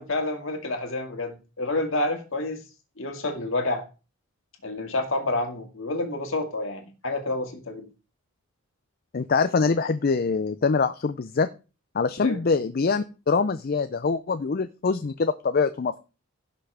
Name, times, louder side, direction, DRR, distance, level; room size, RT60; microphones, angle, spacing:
voice 1, 0.0-2.6 3.0-3.8 4.6-7.9 12.2-12.4, left 2 dB, 60° left, 4 dB, 2.0 m, -29 dB
voice 2, 9.1-11.5 11.9-16.0, left 4 dB, 40° left, 11 dB, 0.4 m, -24 dB
16.5 x 6.1 x 3.4 m, 0.32 s
head